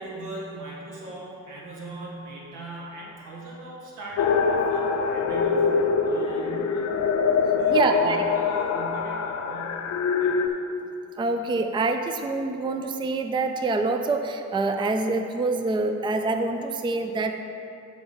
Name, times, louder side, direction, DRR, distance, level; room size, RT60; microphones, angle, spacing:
voice 1, 0.0-6.9 7.5-9.9 10.2-10.4, right 2 dB, 80° right, -4 dB, 1.8 m, -39 dB
sound 1, 4.2-10.5, left 5 dB, 60° left, 0.6 m, -24 dB
voice 2, 7.7-8.3 11.2-17.3, right 3 dB, 15° right, 6 dB, 0.4 m, -26 dB
7.1 x 4.2 x 6.7 m, 2.7 s
cardioid pair, 90°, 30 cm